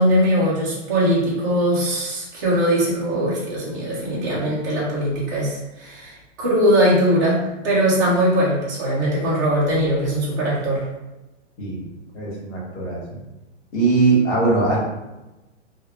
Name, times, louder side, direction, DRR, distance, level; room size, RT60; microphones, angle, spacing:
voice 1, 0.0-10.8, equal, 15° right, -6 dB, 0.4 m, -20 dB
voice 2, 11.6-11.9 12.1-13.2 13.7-14.8, right 3 dB, 65° left, -4 dB, 1.4 m, -20 dB
3.2 x 2.3 x 2.2 m, 1.0 s
hypercardioid pair, 150°, 37 cm